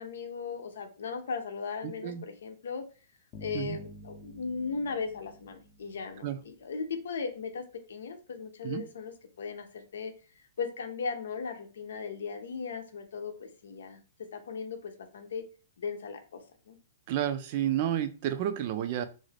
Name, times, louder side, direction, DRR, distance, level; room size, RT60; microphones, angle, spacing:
voice 1, 0.0-2.8 3.4-14.0 14.3-15.4 15.8-16.8, left 5 dB, 80° left, 6 dB, 0.6 m, -37 dB
voice 2, 1.8-2.2 3.5-3.8 6.2-6.4 8.6-8.8 17.1-19.0, right 11 dB, 45° right, 10 dB, 0.4 m, -31 dB
sound 1, 3.3-6.7, equal, 35° left, 0.6 m, -49 dB
2.5 x 2.4 x 3.3 m, 0.35 s
hypercardioid pair, 145°, 0 cm